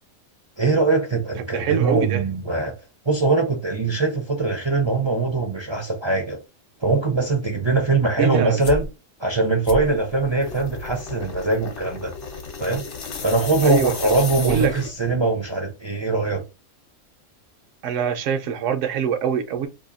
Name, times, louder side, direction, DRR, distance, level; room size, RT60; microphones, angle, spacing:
voice 1, 0.6-2.7 3.0-6.4 6.8-8.9 9.2-12.1 12.6-12.8 13.2-16.4, right 3 dB, 35° right, 0.4 m, -22 dB
voice 2, 1.5-2.2 8.2-8.7 13.6-14.1 14.4-14.7 17.8-19.7, right 7 dB, 75° right, 1.0 m, -24 dB
sound 1, 8.6-8.9 9.6-15.1, left 5 dB, 65° left, 1.1 m, -33 dB
2.7 x 2.6 x 3.9 m
omnidirectional pair, 1.3 m